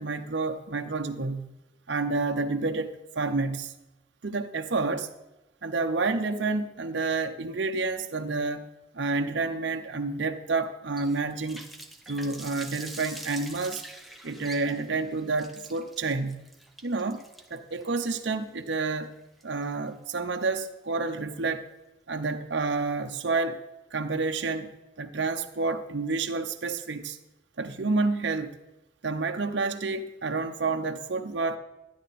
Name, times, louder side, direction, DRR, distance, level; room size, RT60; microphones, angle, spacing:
voice 1, 0.0-1.5 1.9-3.7 4.2-5.1 5.6-8.7 8.9-11.6 12.1-13.8 14.2-16.5 16.8-17.2 17.5-19.1 19.4-21.7 22.1-23.6 23.9-24.7 25.0-27.2 27.6-28.6 29.0-31.6, right 3 dB, 60° right, 5 dB, 0.7 m, -29 dB
Water tap faucet, 11.0-19.9, right 1 dB, ahead, 0.7 m, -45 dB
13.0 x 10.0 x 4.2 m, 0.97 s
head